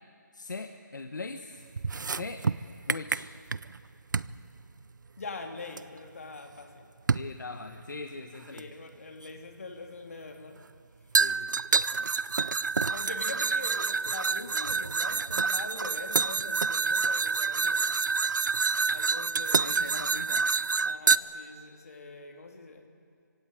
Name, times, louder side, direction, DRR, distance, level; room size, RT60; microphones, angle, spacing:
voice 1, 0.3-1.6 2.1-2.4 2.9-3.3 7.1-8.7 11.2-11.5 19.6-20.5, left 3 dB, 70° left, 6 dB, 1.3 m, -40 dB
sound 1, 1.8-3.8 4.1-4.4 5.8-5.9 7.1-7.3 8.6-8.7 11.1-21.2, right 4 dB, 70° right, 0.5 m, -27 dB
voice 2, 5.2-6.9 8.5-10.6 12.9-17.9 18.9-19.8 20.8-22.9, left 3 dB, 45° left, 4 dB, 2.6 m, -43 dB
22.5 x 17.0 x 9.1 m, 2.4 s
hypercardioid pair, 175°, 11 cm